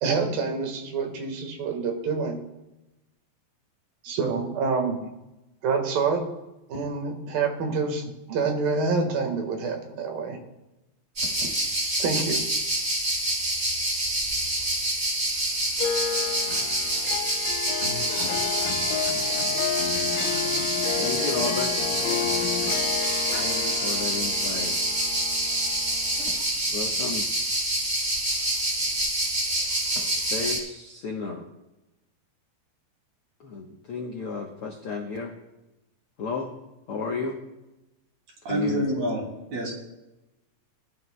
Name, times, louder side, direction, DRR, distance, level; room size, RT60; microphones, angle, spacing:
voice 1, 0.0-2.4 4.0-5.0 5.6-6.3 6.7-10.4 12.0-12.4, right 4 dB, 85° right, 3 dB, 3.4 m, -27 dB
sound 1, 11.2-30.6, right 1 dB, 25° right, 2.4 m, -27 dB
sound 2, 15.7-15.8 16.1-24.2, left 3 dB, 45° left, 2.0 m, -40 dB
Harp, 15.8-26.4, left 10 dB, 90° left, 1.6 m, -32 dB
voice 2, 21.0-21.7 23.4-24.7 26.7-27.7 30.2-31.4 33.4-35.3 36.2-36.5 36.9-37.4 38.5-38.8, left 4 dB, 65° left, -1 dB, 1.4 m, -33 dB
voice 3, 38.5-39.2 39.5-39.7, equal, 55° right, -1 dB, 3.9 m, -26 dB
19.5 x 11.0 x 2.2 m, 0.97 s
omnidirectional pair, 3.9 m